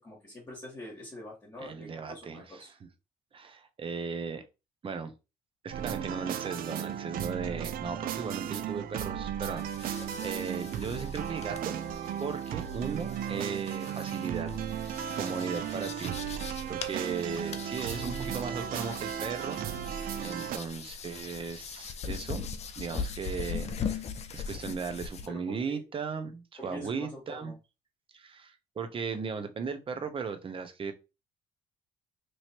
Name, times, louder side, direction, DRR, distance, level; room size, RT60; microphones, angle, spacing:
voice 1, 0.0-2.7 25.3-25.8 26.6-27.5, left 1 dB, 20° left, 1.5 m, -45 dB
voice 2, 1.6-2.7 3.3-4.4 4.8-5.1 5.6-11.8 12.2-14.7 15.1-19.6 20.2-22.5 22.8-24.1 24.3-27.5 28.1-30.9, right 5 dB, 30° right, 0.8 m, -37 dB
sound 1, 5.7-20.6, right 9 dB, 60° right, 0.5 m, -35 dB
sound 2, 9.6-25.3, left 6 dB, 40° left, 0.6 m, -41 dB
3.1 x 2.8 x 4.4 m
cardioid pair, 110°, 17 cm